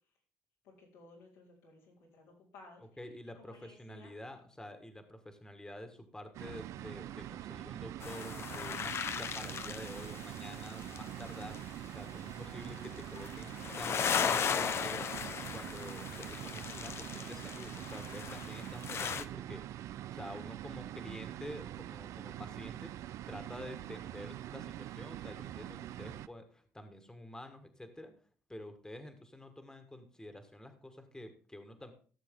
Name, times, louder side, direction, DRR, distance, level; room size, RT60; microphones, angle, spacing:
voice 1, 0.6-3.0 3.3-4.1, left 3 dB, 90° left, -5 dB, 4.3 m, -57 dB
voice 2, 3.0-11.6 11.9-15.1 15.5-19.6 20.1-22.9 23.3-28.1 28.5-31.9, left 1 dB, 10° left, 7 dB, 1.7 m, -48 dB
sound 1, 6.3-26.3, right 13 dB, 70° right, 0.4 m, -44 dB
sound 2, 8.0-11.8 12.4-19.2, left 7 dB, 50° left, 0.7 m, -37 dB
15.0 x 6.9 x 3.8 m, 0.42 s
supercardioid pair, 65°, 5 cm